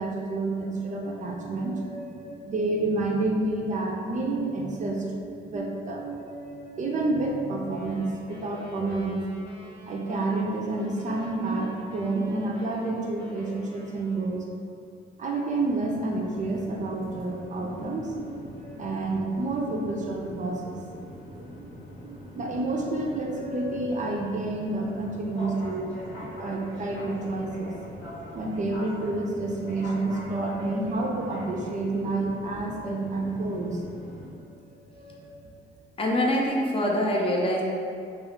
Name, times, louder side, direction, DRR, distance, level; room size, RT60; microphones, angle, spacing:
voice 1, 0.0-9.2 9.9-14.5 15.2-20.8 21.3-21.7 22.0-25.9 26.2-27.7 28.3-33.8 34.3-35.3, right 2 dB, 40° right, 0 dB, 0.4 m, -29 dB
sound 1, 7.7-14.5, equal, 5° left, 0.8 m, -48 dB
sound 2, 15.4-34.3, equal, 80° left, 1.0 m, -43 dB
voice 2, 36.0-37.6, left 1 dB, 25° left, -2 dB, 0.4 m, -24 dB
2.3 x 2.3 x 3.5 m, 2.4 s
cardioid pair, 90°, 20 cm